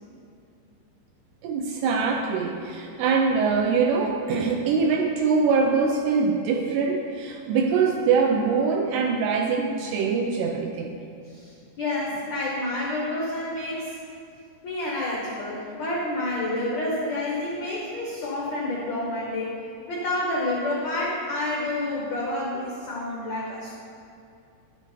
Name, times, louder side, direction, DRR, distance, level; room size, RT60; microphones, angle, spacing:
voice 1, 1.4-11.0, right 5 dB, 80° right, 2 dB, 2.4 m, -23 dB
voice 2, 11.3-14.0 14.6-19.6 19.9-23.8, left 1 dB, 80° left, -4 dB, 1.6 m, -29 dB
11.0 x 7.4 x 4.5 m, 2.6 s
omnidirectional pair, 5.1 m